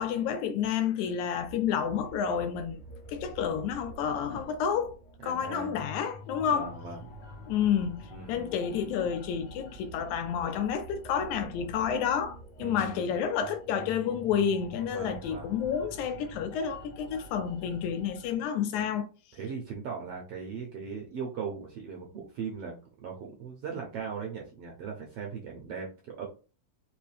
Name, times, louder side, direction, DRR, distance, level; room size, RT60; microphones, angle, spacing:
voice 1, 0.0-2.8 3.1-5.0 5.2-6.7 7.5-19.1, left 8 dB, 80° left, 1.8 m, -30 dB
sound 1, 1.4-18.4, equal, 45° left, 1.4 m, -47 dB
voice 2, 5.2-5.7 6.5-7.0 8.1-8.5 12.6-13.1 14.9-15.5 19.3-26.3, right 6 dB, 70° right, 1.5 m, -39 dB
5.0 x 3.1 x 3.3 m
omnidirectional pair, 3.6 m